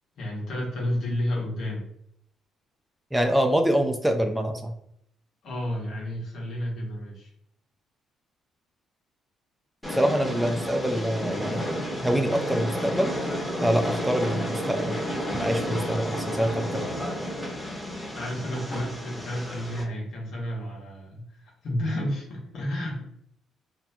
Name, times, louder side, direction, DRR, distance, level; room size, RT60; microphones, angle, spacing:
voice 1, 0.2-1.9 5.4-7.3 18.1-23.0, left 1 dB, 70° left, -3 dB, 1.0 m, -31 dB
voice 2, 3.1-4.7 9.9-11.7 12.0-13.1 13.6-15.0 15.4-16.9, equal, 5° right, 4 dB, 0.4 m, -25 dB
Train, 9.8-19.8, equal, 15° left, 1.0 m, -31 dB
2.6 x 2.2 x 2.7 m, 0.73 s
supercardioid pair, 75°, 0 cm